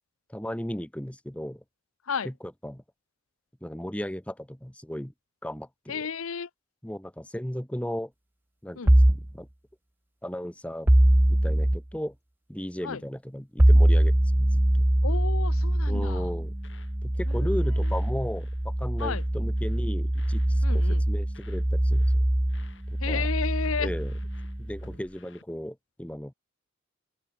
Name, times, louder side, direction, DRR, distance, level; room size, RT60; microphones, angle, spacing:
voice 1, 0.3-1.6 2.2-2.3 2.6-2.8 3.6-5.1 5.4-6.1 6.8-8.1 8.6-9.5 10.2-10.9 11.3-12.1 12.5-14.8 15.9-16.5 17.0-22.2 22.9-23.3 23.8-24.1 24.6-26.3, equal, 5° left, 0.9 m, -36 dB
voice 2, 5.9-6.5 8.8-8.9 12.8-13.0 15.0-16.3 17.3-17.9 19.0-19.2 20.6-21.0 23.0-23.9, left 6 dB, 85° left, 0.8 m, -33 dB
sound 1, 8.9-9.3 10.9-11.8 13.6-24.9, right 1 dB, 10° right, 0.5 m, -23 dB
sound 2, 16.0-17.0 17.2-17.5 17.8-19.3 19.6-19.9 20.1-21.7 21.9-22.2 22.5-25.4, left 3 dB, 60° left, 3.6 m, -56 dB
open air
head